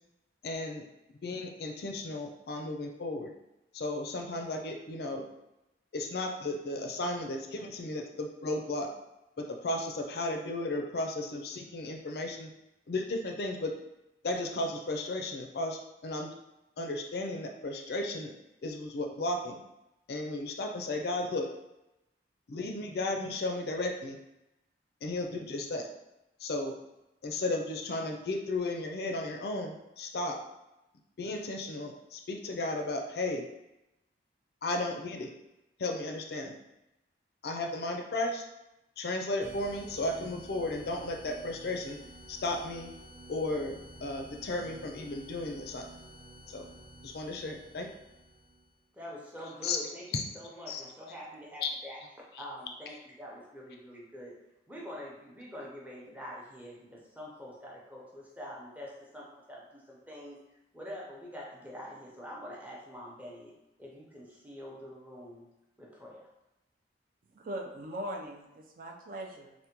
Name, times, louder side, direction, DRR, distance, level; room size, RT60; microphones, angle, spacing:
voice 1, 0.4-0.8 1.2-3.3 3.7-5.2 5.9-8.9 9.4-12.5 12.9-13.7 14.2-16.3 16.8-18.3 18.6-19.6 20.1-21.5 22.5-24.2 25.0-25.9 26.4-26.7 27.2-30.4 31.2-33.5 34.6-35.3 35.8-36.5 37.4-38.4 39.0-42.0 42.3-42.9 43.3-45.9 46.5-46.7 47.0-47.9 49.6-49.8 50.1-50.2 50.7-50.8 51.6-51.7 52.3-52.4, left 2 dB, 60° left, 3 dB, 0.4 m, -34 dB
sound 1, 39.4-48.8, right 1 dB, 80° right, 0.7 m, -51 dB
voice 2, 48.9-52.0 52.3-54.3 54.7-60.4 60.7-63.5 63.8-65.5 65.8-66.3, equal, 10° right, -4 dB, 0.6 m, -45 dB
voice 3, 67.3-69.5, right 1 dB, 50° right, 1 dB, 0.4 m, -40 dB
3.4 x 2.1 x 2.9 m, 0.91 s
head